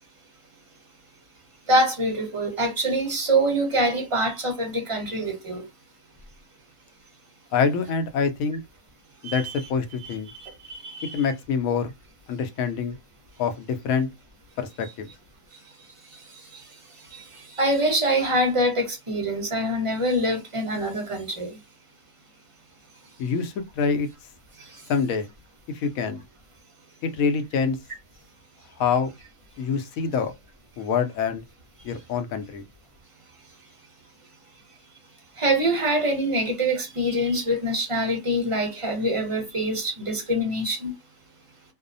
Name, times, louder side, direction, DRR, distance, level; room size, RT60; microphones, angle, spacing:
voice 1, 1.7-5.6 9.2-9.4 10.0-10.1 10.4-11.2 17.1-17.2 17.6-21.5 35.4-40.9, right 1 dB, 30° right, 0.6 m, -25 dB
voice 2, 7.5-8.6 9.2-10.3 11.1-11.9 12.3-13.0 13.4-14.1 14.6-15.1 23.2-24.1 24.9-25.3 25.7-26.2 27.0-27.8 28.8-29.1 29.6-30.3 30.8-31.4 31.8-32.6, left 5 dB, 70° left, 0.9 m, -25 dB
2.7 x 2.0 x 2.5 m
omnidirectional pair, 1.6 m